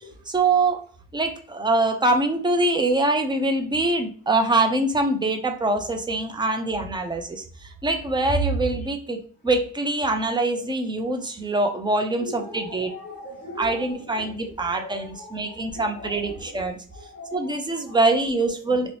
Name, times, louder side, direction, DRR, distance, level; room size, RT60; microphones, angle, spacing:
voice 1, 0.3-0.8 1.1-12.9 13.6-16.8 17.3-18.9, right 2 dB, 15° right, 5 dB, 0.4 m, -24 dB
voice 2, 12.2-18.4, left 2 dB, 20° left, -5 dB, 1.0 m, -41 dB
3.0 x 2.7 x 3.0 m, 0.43 s
wide cardioid pair, 135°, 35 cm